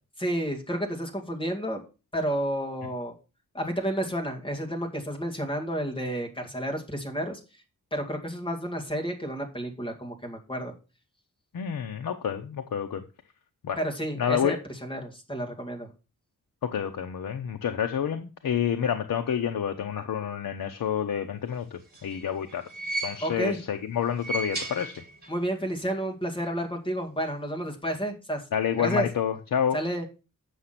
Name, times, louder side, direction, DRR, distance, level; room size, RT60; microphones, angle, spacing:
voice 1, 0.2-1.8 2.1-3.1 3.5-7.4 7.9-10.7 13.8-15.9 23.2-23.6 25.3-28.4 28.8-29.1 29.7-30.1, right 1 dB, 15° left, 2 dB, 2.0 m, -31 dB
voice 2, 11.5-13.0 13.6-13.8 14.2-14.6 16.6-22.7 23.0-24.9 28.5-29.8, left 8 dB, 75° left, 6 dB, 0.9 m, -28 dB
sound 1, 21.7-23.6 24.1-25.5 25.7-25.8 26.9-27.0, right 2 dB, 30° right, 2.8 m, -36 dB
8.4 x 6.1 x 5.7 m, 0.31 s
wide cardioid pair, 170°, 33 cm